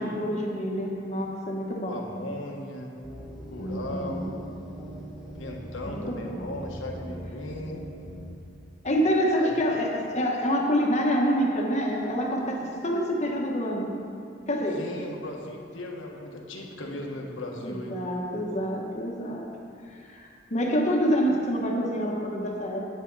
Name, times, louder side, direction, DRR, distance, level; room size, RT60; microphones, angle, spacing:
voice 1, 0.0-2.0 3.6-4.3 5.8-6.4 8.8-13.9 14.5-14.8 17.6-19.5 19.9-22.9, equal, 35° left, 0 dB, 1.2 m, -27 dB
voice 2, 1.9-2.9 3.5-4.3 5.4-7.9 9.4-9.5 14.8-18.0, left 1 dB, 85° left, 0 dB, 1.4 m, -37 dB
sound 1, 3.0-8.3, equal, 5° right, 1.2 m, -41 dB
9.8 x 9.4 x 4.0 m, 2.4 s
head